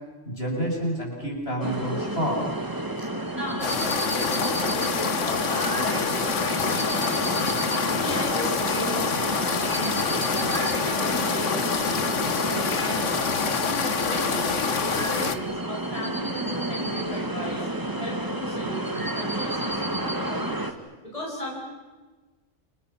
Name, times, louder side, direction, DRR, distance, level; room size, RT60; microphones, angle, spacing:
voice 1, 0.3-2.5, equal, 55° left, -1 dB, 7.8 m, -28 dB
sound 1, 1.6-20.7, right 1 dB, 15° right, 1.9 m, -31 dB
voice 2, 3.0-9.1 9.4-10.5 10.8-17.7 18.0-20.7 21.0-21.6, equal, 30° left, -3 dB, 6.2 m, -36 dB
sound 2, 3.6-15.4, left 6 dB, 80° left, 1.6 m, -26 dB
30.0 x 29.5 x 5.9 m, 1.3 s
omnidirectional pair, 1.2 m